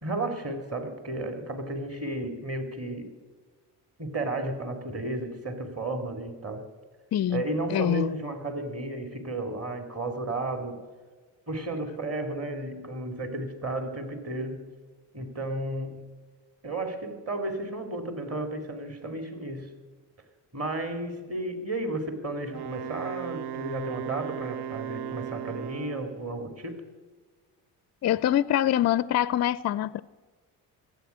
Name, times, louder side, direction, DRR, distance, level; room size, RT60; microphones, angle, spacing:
voice 1, 0.0-3.1 4.0-6.7 7.3-10.8 11.5-14.7 15.1-16.0 16.6-19.7 20.5-26.8, right 2 dB, 30° right, 2.6 m, -33 dB
voice 2, 7.1-7.4 7.7-8.1 28.0-30.0, left 11 dB, 35° left, 0.4 m, -24 dB
Wind instrument woodwind instrument, 22.5-26.2, right 10 dB, 55° right, 0.7 m, -37 dB
15.5 x 8.1 x 8.2 m
supercardioid pair, 55°, 47 cm